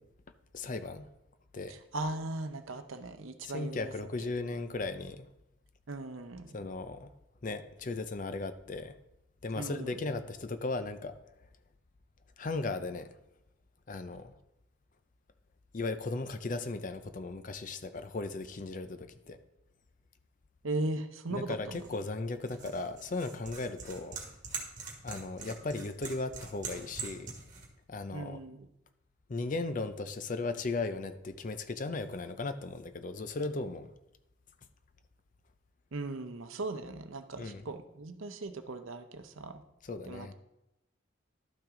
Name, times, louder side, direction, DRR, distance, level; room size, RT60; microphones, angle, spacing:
voice 1, 0.5-1.1 1.5-1.8 3.4-5.3 6.5-7.1 7.4-9.0 9.4-11.2 12.4-13.1 13.9-14.3 15.7-19.4 21.3-24.2 25.0-27.4 27.9-28.4 29.3-33.9 37.4-37.6 39.9-40.3, left 3 dB, 40° left, 10 dB, 0.5 m, -36 dB
voice 2, 1.7-3.9 5.9-6.6 9.5-10.0 20.6-21.9 28.1-28.7 35.9-39.6 40.0-40.3, right 2 dB, 75° right, 8 dB, 0.7 m, -38 dB
sound 1, 21.7-27.7, right 5 dB, 40° right, 1.7 m, -44 dB
12.0 x 5.9 x 3.7 m, 0.87 s
head